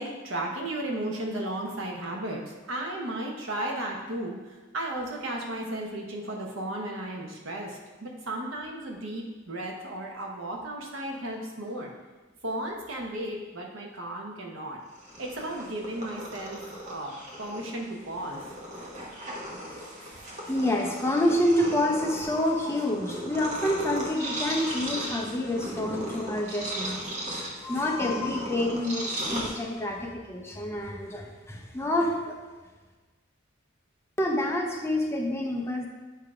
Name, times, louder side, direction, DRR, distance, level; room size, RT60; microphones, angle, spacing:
voice 1, 0.0-11.9 12.4-14.8 15.2-18.5, right 1 dB, 85° right, 0 dB, 1.1 m, -34 dB
Purr, 14.9-30.0, equal, 35° right, 1.1 m, -37 dB
voice 2, 20.4-32.4 34.2-35.9, left 1 dB, 15° left, 0 dB, 0.7 m, -28 dB
8.2 x 2.9 x 4.9 m, 1.3 s
head